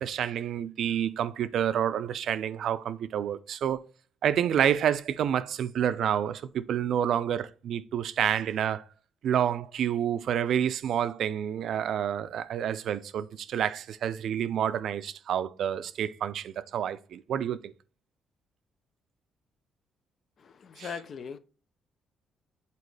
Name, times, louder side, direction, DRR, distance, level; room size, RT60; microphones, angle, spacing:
voice 1, 0.0-3.8 4.2-8.8 9.2-17.7 20.8-20.9, right 9 dB, 70° right, 0.4 m, -28 dB
voice 2, 20.4-21.4, left 6 dB, 55° left, 0.5 m, -40 dB
8.3 x 4.1 x 3.2 m
cardioid pair, 90°, 0 cm